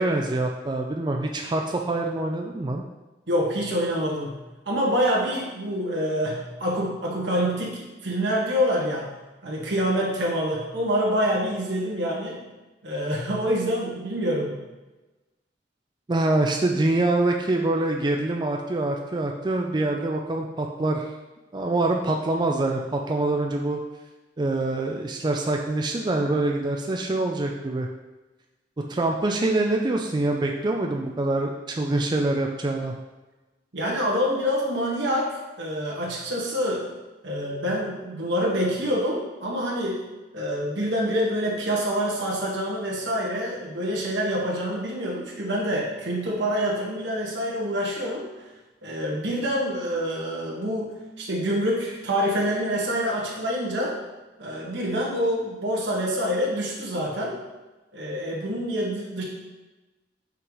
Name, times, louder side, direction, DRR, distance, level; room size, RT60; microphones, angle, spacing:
voice 1, 0.0-2.8 16.1-21.1 21.5-23.8 24.4-27.9 28.9-32.9, right 2 dB, 25° right, 2 dB, 0.4 m, -25 dB
voice 2, 3.3-4.4 4.6-9.1 9.4-12.4 12.8-14.5 33.7-36.9 37.2-40.0 40.3-48.3 48.8-54.0 54.4-57.4 57.9-59.2, equal, 90° right, -4 dB, 1.7 m, -26 dB
5.7 x 3.2 x 5.4 m, 1.1 s
head